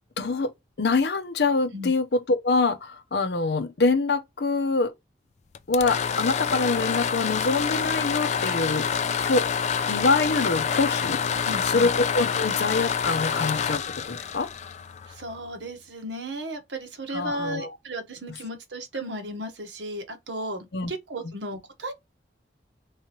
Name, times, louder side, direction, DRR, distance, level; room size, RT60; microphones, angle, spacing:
voice 1, 0.2-0.5 0.8-4.9 5.7-8.9 9.2-9.5 9.9-11.2 11.6-14.5 17.1-17.7 20.7-20.9, left 3 dB, 65° left, 0.7 m, -25 dB
sound 1, 5.5-15.4, left 7 dB, 40° left, 0.4 m, -27 dB
voice 2, 11.4-11.9 15.1-21.9, right 1 dB, 90° right, 1.1 m, -35 dB
3.7 x 3.2 x 2.9 m
head